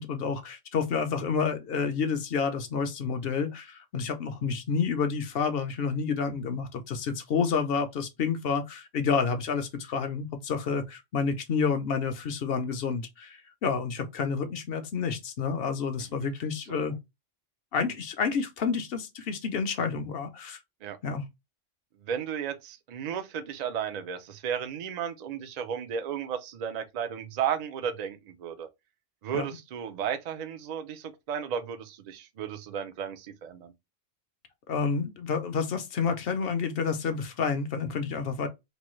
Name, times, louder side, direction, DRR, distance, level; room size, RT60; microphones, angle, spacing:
voice 1, 0.0-17.0 17.7-20.6 21.0-21.3 29.3-29.4 34.7-38.5, left 5 dB, 60° left, 0.7 m, -29 dB
voice 2, 22.0-28.7 29.2-33.7, right 8 dB, 65° right, 0.4 m, -34 dB
3.1 x 2.2 x 3.0 m
omnidirectional pair, 1.3 m